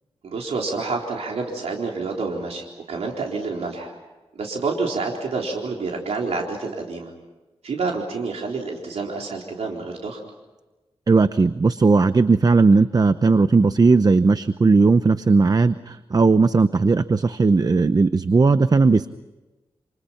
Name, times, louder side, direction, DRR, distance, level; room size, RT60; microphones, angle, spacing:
voice 1, 0.2-4.0 4.4-7.1 7.6-10.2, right 4 dB, 90° right, 0 dB, 3.9 m, -28 dB
voice 2, 11.1-19.1, right 4 dB, 35° right, 12 dB, 0.8 m, -17 dB
29.0 x 27.5 x 5.8 m, 1.1 s
wide cardioid pair, 95°, 10 cm